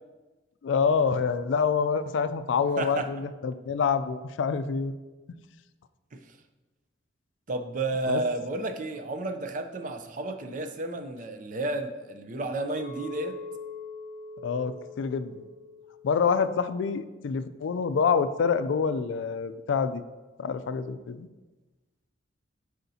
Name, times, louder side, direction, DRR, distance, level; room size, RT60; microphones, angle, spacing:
voice 1, 0.6-4.9 8.1-8.2 14.4-15.5 16.0-20.0 20.4-21.3, left 6 dB, 75° left, 12 dB, 0.3 m, -27 dB
voice 2, 2.8-3.1 6.1-6.4 7.5-13.4, right 2 dB, 40° right, 7 dB, 0.5 m, -32 dB
Chink clink, 12.8-17.0, left 2 dB, 25° left, 1.0 m, -43 dB
8.0 x 5.0 x 2.7 m, 1.2 s
head